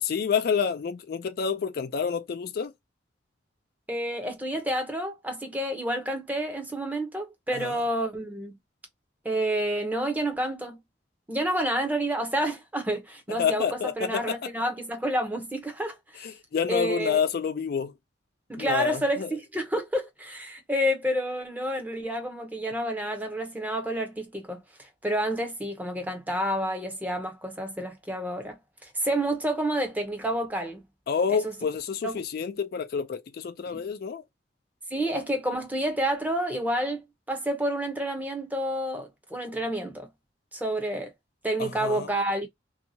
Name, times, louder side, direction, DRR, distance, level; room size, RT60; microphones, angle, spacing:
voice 1, 0.0-2.7 7.5-7.8 13.4-14.5 16.2-17.9 18.6-19.3 31.1-34.2 41.6-42.1, left 6 dB, 55° left, 0.3 m, -28 dB
voice 2, 3.9-8.6 9.2-10.8 11.3-16.3 16.7-17.2 18.5-30.8 31.3-31.5 32.0-32.2 33.7-33.8 34.9-40.1 40.5-41.1 41.4-42.5, right 1 dB, 10° right, 0.7 m, -29 dB
2.8 x 2.3 x 2.7 m
head